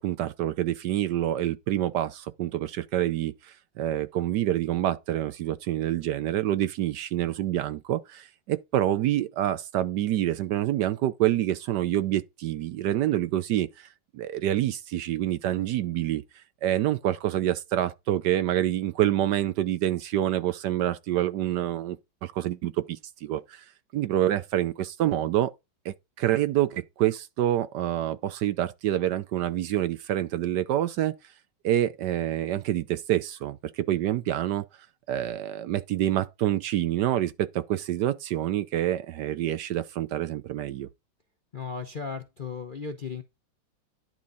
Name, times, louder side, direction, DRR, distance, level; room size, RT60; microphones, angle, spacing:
voice 1, 0.0-13.9 14.1-16.2 16.6-22.0 22.2-23.6 23.9-25.5 25.8-31.2 31.6-34.7 35.1-40.9, right 12 dB, 70° right, 1.1 m, -27 dB
voice 2, 41.5-43.2, left 5 dB, 45° left, 0.6 m, -35 dB
10.5 x 3.7 x 5.4 m
omnidirectional pair, 2.1 m